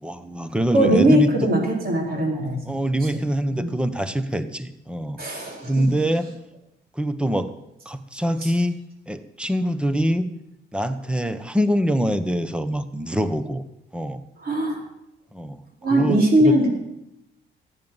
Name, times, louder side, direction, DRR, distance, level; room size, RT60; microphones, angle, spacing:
voice 1, 0.0-1.3 2.7-5.2 5.7-6.3 7.0-7.5 7.8-8.8 9.1-10.3 10.7-13.6 13.9-14.2 15.3-15.6 15.9-16.5, equal, 5° right, 11 dB, 1.1 m, -24 dB
voice 2, 0.7-2.8 3.1-3.2 3.5-3.8 5.2-5.9 8.4-8.5 14.4-14.8 15.8-16.7, right 1 dB, 50° right, 0 dB, 4.8 m, -20 dB
14.0 x 9.6 x 7.4 m, 0.86 s
cardioid pair, 90°, 20 cm